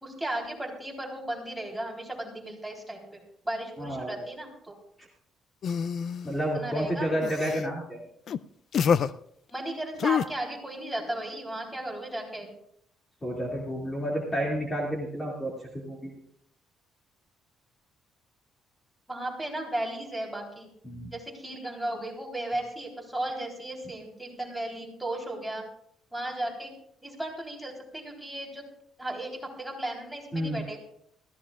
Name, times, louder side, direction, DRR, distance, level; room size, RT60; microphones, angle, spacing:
voice 1, 0.0-4.8 6.5-7.1 9.5-12.5 19.1-20.7 21.1-25.6 26.1-26.7 27.0-28.6 29.0-29.3 29.6-30.8, right 1 dB, 5° right, -1 dB, 3.6 m, -35 dB
voice 2, 3.8-4.2 6.2-8.0 13.2-16.1 20.8-21.1 30.3-30.6, equal, 20° left, -2 dB, 2.4 m, -30 dB
sound 1, 5.6-6.3 7.2-7.6 8.3-8.4 8.7-9.1 10.0-10.2, left 7 dB, 55° left, 0.4 m, -26 dB
20.0 x 14.5 x 2.4 m, 0.72 s
cardioid pair, 110°, 0 cm